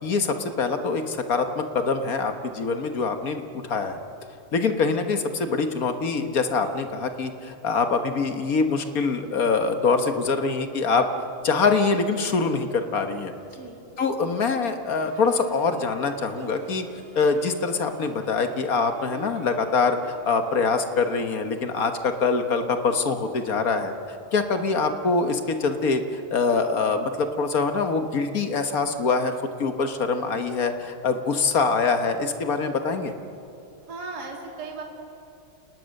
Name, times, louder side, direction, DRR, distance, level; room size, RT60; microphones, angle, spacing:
voice 1, 0.0-3.4 3.7-4.0 4.5-11.1 11.4-13.3 14.0-16.9 17.1-29.3 29.6-33.1, left 4 dB, 45° left, 7 dB, 1.5 m, -24 dB
voice 2, 13.5-13.8 33.9-34.8, right 3 dB, 45° right, -1 dB, 3.2 m, -36 dB
Harp, 14.9-21.1, right 2 dB, 70° right, 4.0 m, -47 dB
29.0 x 19.0 x 6.6 m, 2.7 s
omnidirectional pair, 2.4 m